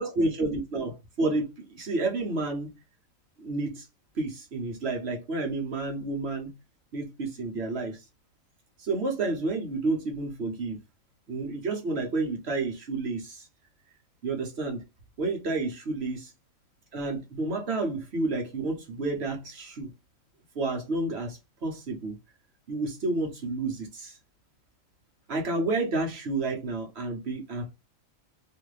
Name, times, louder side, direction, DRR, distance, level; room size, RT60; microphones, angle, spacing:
voice 1, 0.0-2.7 3.4-3.9 4.2-6.5 6.9-8.0 8.8-10.8 11.3-13.5 14.2-14.8 15.2-16.3 16.9-19.9 20.5-22.1 22.7-24.2 25.3-27.7, right 3 dB, 55° right, 1.0 m, -30 dB
2.7 x 2.5 x 3.0 m
omnidirectional pair, 1.4 m